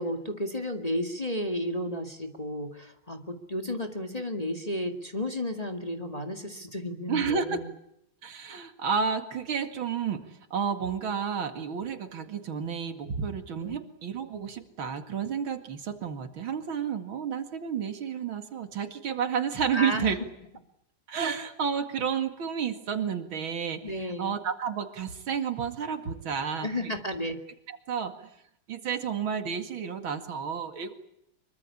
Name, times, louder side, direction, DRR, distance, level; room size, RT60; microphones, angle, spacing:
voice 1, 0.0-7.7 13.6-13.8 19.7-20.1 23.8-24.3 26.6-27.4, left 1 dB, 20° left, 5 dB, 2.1 m, -33 dB
voice 2, 7.1-7.6 8.2-20.2 21.1-26.9 27.7-28.3 28.7-30.9, right 7 dB, 80° right, 8 dB, 2.9 m, -31 dB
25.0 x 23.5 x 8.6 m, 0.79 s
omnidirectional pair, 2.2 m